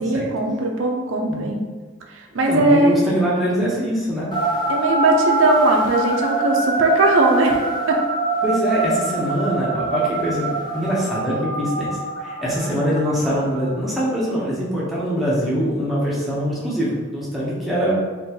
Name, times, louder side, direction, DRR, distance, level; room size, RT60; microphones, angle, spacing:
voice 1, 0.0-1.6 2.2-3.0 4.7-7.6 7.9-8.0, right 2 dB, 80° right, 0 dB, 0.6 m, -19 dB
voice 2, 2.5-4.3 8.4-10.5 10.7-18.0, equal, ahead, -7 dB, 0.8 m, -23 dB
sound 1, 4.3-13.8, right 3 dB, 25° left, 0.4 m, -24 dB
3.7 x 2.6 x 2.9 m, 1.4 s
head